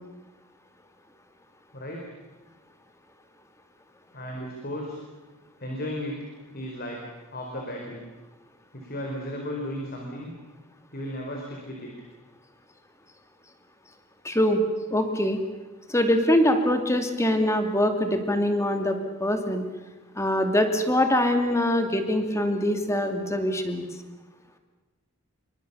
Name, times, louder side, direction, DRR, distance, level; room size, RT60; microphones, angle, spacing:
voice 1, 1.7-2.1 4.1-5.0 5.6-6.2 6.5-7.0 7.3-8.0 8.7-10.3 10.9-11.9, equal, 45° left, 0 dB, 4.7 m, -34 dB
voice 2, 14.2-14.6 14.9-15.4 15.9-19.7 20.2-23.9, left 1 dB, 15° left, 6 dB, 2.5 m, -23 dB
27.0 x 24.5 x 7.0 m, 1.2 s
head